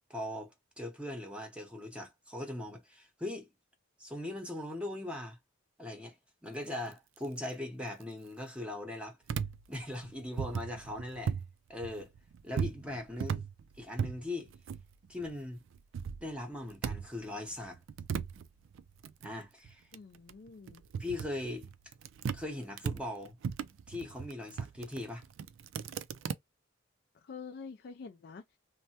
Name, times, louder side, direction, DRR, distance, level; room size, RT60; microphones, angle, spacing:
voice 1, 0.1-3.5 4.0-5.4 5.8-6.1 6.4-9.2 9.7-11.3 11.7-12.1 12.4-13.4 13.8-14.5 15.1-15.6 16.2-17.8 19.2-19.9 21.0-21.7 22.3-23.4 23.9-25.2, left 1 dB, 5° right, 0.7 m, -40 dB
sound 1, 9.3-11.5 11.8-15.3 15.7-17.2 17.5-22.4 22.8-26.3, right 6 dB, 80° right, 0.3 m, -38 dB
voice 2, 19.9-20.8 27.1-28.6, left 5 dB, 55° left, 0.3 m, -47 dB
3.2 x 2.1 x 2.7 m
head